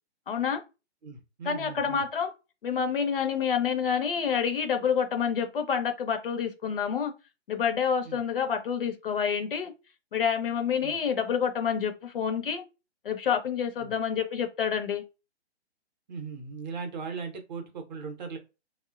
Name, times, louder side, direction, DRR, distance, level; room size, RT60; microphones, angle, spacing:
voice 1, 0.3-0.6 1.5-2.3 2.6-7.1 7.5-9.7 10.1-12.6 13.0-15.0, left 7 dB, 55° left, 0.5 m, -28 dB
voice 2, 1.0-2.1 8.0-8.2 10.8-11.0 13.8-13.9 16.1-18.4, right 5 dB, 40° right, 0.6 m, -38 dB
2.5 x 2.1 x 2.3 m
figure-of-eight pair, 135°, 34 cm